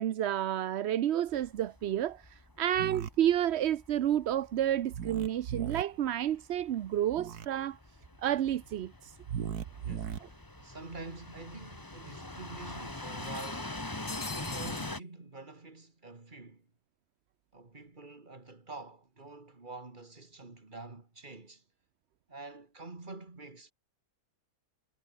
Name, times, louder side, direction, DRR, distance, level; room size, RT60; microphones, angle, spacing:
voice 1, 0.0-7.8 8.2-9.1, right 11 dB, 60° right, 0.7 m, -30 dB
sound 1, 1.3-15.0, left 2 dB, 15° left, 1.7 m, -44 dB
sound 2, 2.7-3.1 4.9-5.8 7.1-7.5 9.2-10.2, right 8 dB, 80° right, 1.8 m, -37 dB
voice 2, 9.7-16.7 17.5-21.6 22.3-23.7, right 3 dB, 30° right, 2.6 m, -47 dB
sound 3, 9.8-9.9 10.2-10.3 11.4-11.5 11.8-11.9 13.2-14.9, left 4 dB, 75° left, 3.7 m, -44 dB
omnidirectional pair, 1.6 m